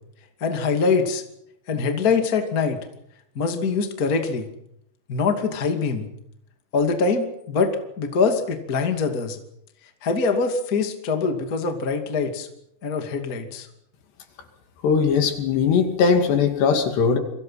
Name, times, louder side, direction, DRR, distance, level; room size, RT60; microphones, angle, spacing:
voice 1, 0.4-1.2 1.7-2.8 3.3-4.5 5.1-6.1 6.7-9.4 10.0-12.5 12.8-13.7, left 4 dB, 25° left, 5 dB, 2.2 m, -23 dB
voice 2, 14.8-17.2, left 6 dB, 70° left, 6 dB, 4.4 m, -19 dB
29.5 x 24.0 x 5.8 m, 0.76 s
omnidirectional pair, 5.1 m